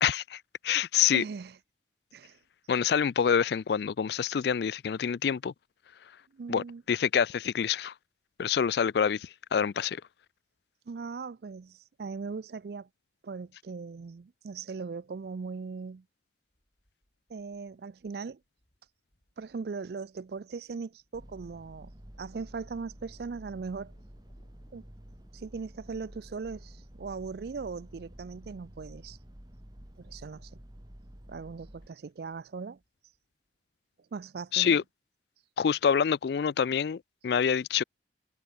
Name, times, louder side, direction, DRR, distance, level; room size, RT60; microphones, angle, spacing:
voice 1, 0.0-1.2 2.7-5.5 6.5-7.9 8.4-10.0 34.5-34.8 35.6-37.8, left 7 dB, 60° left, 0.3 m, -26 dB
voice 2, 1.1-1.6 2.1-2.4 6.3-6.8 10.9-12.9 13.2-16.0 17.3-18.4 19.4-21.9 22.2-23.9 24.7-24.8 25.3-29.2 30.0-30.5 31.3-32.8 34.1-34.8, right 4 dB, 55° right, 0.4 m, -39 dB
sound 1, 16.5-33.5, equal, 35° left, 6.7 m, -71 dB
sound 2, 21.1-31.9, equal, 20° right, 1.6 m, -50 dB
head